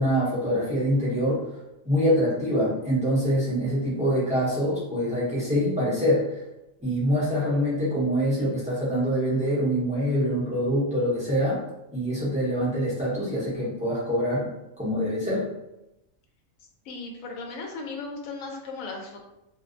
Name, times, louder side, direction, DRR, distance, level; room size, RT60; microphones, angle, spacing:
voice 1, 0.0-1.4 1.8-6.2 6.8-11.6 11.9-14.5 14.8-15.5, equal, 5° right, -9 dB, 0.7 m, -25 dB
voice 2, 16.8-19.2, left 3 dB, 85° left, 2 dB, 1.0 m, -36 dB
2.6 x 2.1 x 2.4 m, 0.89 s
omnidirectional pair, 1.4 m